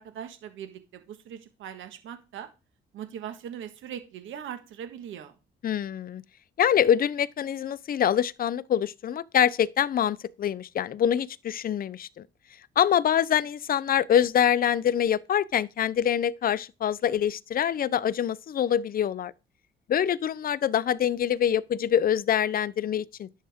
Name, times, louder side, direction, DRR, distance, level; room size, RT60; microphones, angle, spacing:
voice 1, 0.0-2.5 2.9-5.3, right 9 dB, 80° right, 1.6 m, -40 dB
voice 2, 5.6-6.2 6.6-12.3 12.8-19.3 19.9-23.3, left 9 dB, 50° left, 0.6 m, -25 dB
11.0 x 7.4 x 3.6 m
cardioid pair, 90°, 20 cm